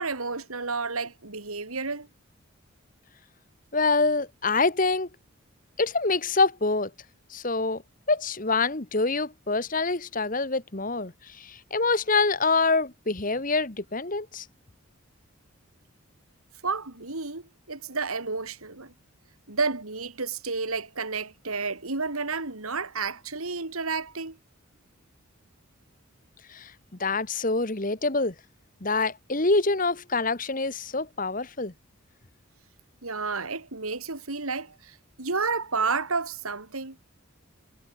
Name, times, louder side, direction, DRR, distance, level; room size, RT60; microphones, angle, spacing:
voice 1, 0.0-2.1 16.6-18.9 19.5-24.4 33.0-37.0, right 4 dB, 85° right, 3.0 m, -31 dB
voice 2, 3.7-5.1 5.8-6.9 7.3-7.8 8.1-14.4 26.5-26.7 27.0-28.3 28.8-31.7, left 3 dB, 40° left, 1.5 m, -26 dB
head